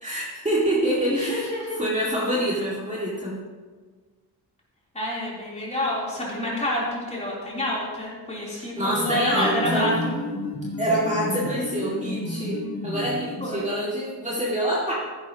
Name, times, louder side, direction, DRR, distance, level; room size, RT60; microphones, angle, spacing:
voice 1, 0.0-3.4 8.5-9.9 10.8-14.9, right 1 dB, 15° right, -6 dB, 2.1 m, -26 dB
voice 2, 1.1-1.8 4.9-10.1 13.4-13.7, left 1 dB, 15° left, -6 dB, 3.5 m, -28 dB
sound 1, 8.9-13.8, left 1 dB, 35° left, 2.1 m, -31 dB
14.5 x 11.0 x 3.0 m, 1.4 s
wide cardioid pair, 150°, 41 cm